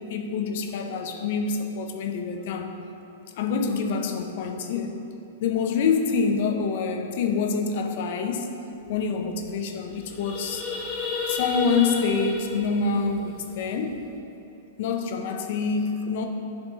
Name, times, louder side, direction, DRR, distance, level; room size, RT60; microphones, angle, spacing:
voice 1, 0.0-2.7 3.3-5.0 5.4-8.5 8.9-10.6 11.3-14.0 14.8-16.3, left 5 dB, 55° left, 4 dB, 0.6 m, -26 dB
sound 1, 8.9-9.0 9.2-9.4 9.8-14.1, left 4 dB, 30° left, 1.4 m, -32 dB
9.8 x 3.5 x 2.8 m, 2.9 s
hypercardioid pair, 105°, 0 cm